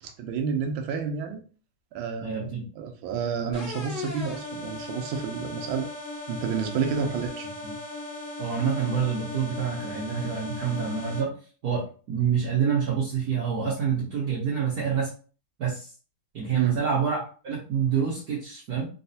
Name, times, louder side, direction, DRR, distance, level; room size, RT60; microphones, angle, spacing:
voice 1, 0.0-1.4 1.9-5.9 6.3-7.5 16.5-16.8, right 6 dB, 75° right, 4 dB, 1.4 m, -30 dB
voice 2, 2.2-2.6 6.8-6.9 7.6-7.7 8.4-11.3 11.6-15.1 15.6-15.9 16.3-18.9, right 7 dB, 60° right, -5 dB, 1.1 m, -27 dB
sound 1, 3.5-11.2, left 2 dB, 60° left, 1.8 m, -37 dB
4.0 x 2.3 x 2.7 m, 0.38 s
omnidirectional pair, 2.4 m